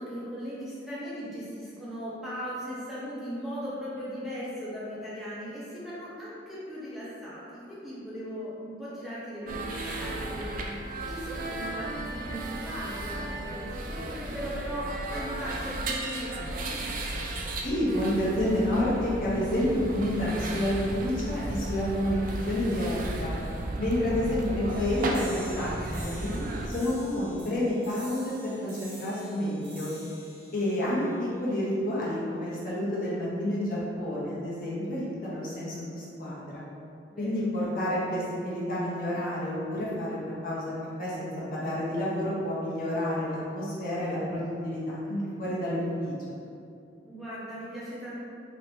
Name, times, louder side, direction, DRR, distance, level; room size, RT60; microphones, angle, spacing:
voice 1, 0.0-16.9 26.2-26.6 37.1-37.5 47.0-48.1, equal, ahead, -10 dB, 0.7 m, -38 dB
sound 1, 9.5-26.7, right 1 dB, 45° right, 0.4 m, -35 dB
voice 2, 17.6-22.2 22.5-23.3 23.8-26.3 26.7-29.9 30.5-36.6 37.2-40.7 41.0-46.1, left 1 dB, 50° left, -7 dB, 0.9 m, -29 dB
sound 2, 24.7-31.7, right 1 dB, 65° right, 0.7 m, -48 dB
3.1 x 2.8 x 4.3 m, 2.6 s
head